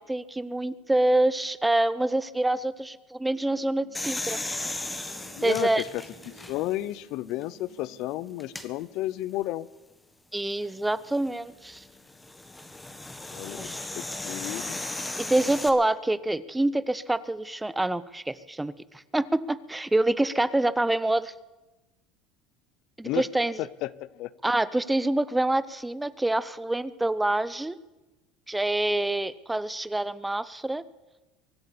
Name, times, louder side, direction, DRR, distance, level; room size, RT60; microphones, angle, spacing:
voice 1, 0.0-4.4 5.4-5.8 10.3-11.8 13.5-13.8 15.2-21.3 23.0-23.7 24.4-27.8 28.5-30.8, right 1 dB, 10° right, 17 dB, 0.6 m, -26 dB
sound 1, 3.3-9.1, right 5 dB, 90° right, 4.0 m, -56 dB
sound 2, 3.9-6.9 7.4-7.5 8.4-8.7 10.8-15.7, left 2 dB, 10° left, 1.4 m, -36 dB
voice 2, 5.4-9.7 13.3-14.9 23.0-23.3 23.6-24.3, left 16 dB, 65° left, 19 dB, 0.5 m, -33 dB
23.5 x 8.0 x 7.0 m, 1.1 s
supercardioid pair, 115°, 0 cm